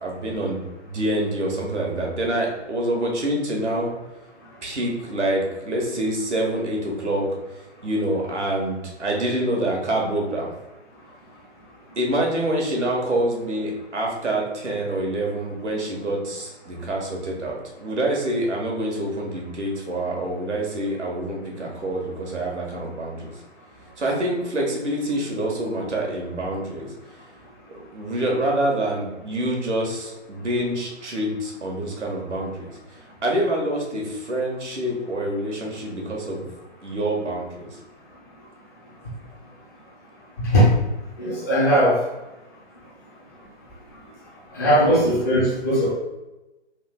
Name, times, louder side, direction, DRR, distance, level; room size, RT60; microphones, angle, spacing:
voice 1, 0.0-3.9 4.6-7.3 7.8-10.5 12.0-23.3 24.0-26.9 27.9-32.7 33.2-36.4 36.8-37.8 44.7-45.1, right 1 dB, 75° right, -1 dB, 1.4 m, -26 dB
voice 2, 41.2-42.0 44.5-45.9, equal, 15° left, -8 dB, 0.5 m, -18 dB
3.7 x 2.3 x 3.5 m, 1.0 s
figure-of-eight pair, 145°, 35 cm